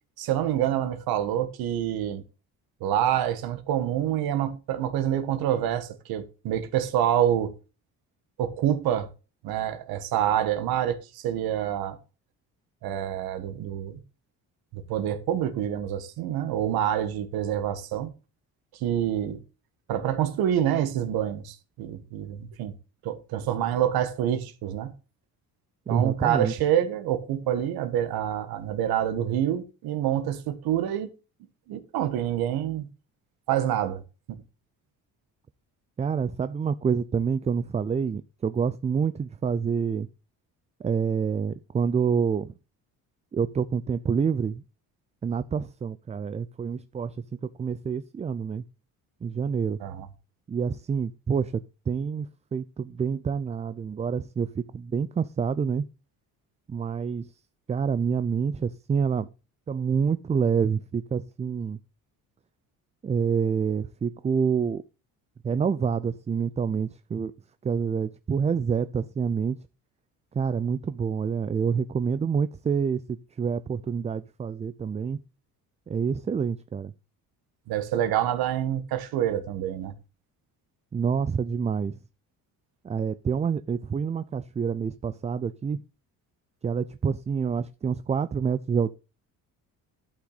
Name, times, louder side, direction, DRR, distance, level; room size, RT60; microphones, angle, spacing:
voice 1, 0.2-2.2 2.8-7.5 8.4-9.1 9.4-12.0 12.8-14.0 14.7-18.1 18.7-19.4 19.9-22.7 23.0-24.9 25.9-31.1 31.7-32.9 33.5-34.0 34.3-34.4 49.8-50.1 77.7-79.9, right 10 dB, 80° right, 1.5 m, -27 dB
voice 2, 25.9-26.5 36.0-40.1 40.8-42.5 43.3-44.6 45.2-47.2 47.4-48.6 49.2-49.8 50.5-51.6 51.9-55.9 56.7-57.3 57.7-59.3 59.7-61.8 63.0-64.8 65.4-67.3 67.6-69.6 70.3-75.2 75.9-76.9 80.9-82.0 82.8-85.8 86.6-89.0, right 6 dB, 20° right, 0.3 m, -27 dB
11.5 x 5.9 x 4.0 m
cardioid pair, 100°, 36 cm